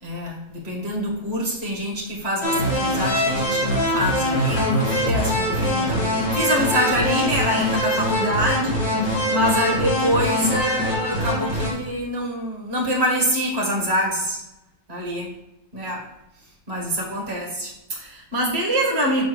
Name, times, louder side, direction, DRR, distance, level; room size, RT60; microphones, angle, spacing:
voice 1, 0.0-8.8 9.3-14.4 14.9-15.3 15.7-16.1 16.7-19.2, equal, 30° right, -1 dB, 2.0 m, -25 dB
sound 1, 2.4-11.7, equal, 50° left, 2.3 m, -23 dB
6.1 x 4.2 x 6.3 m, 0.87 s
omnidirectional pair, 2.1 m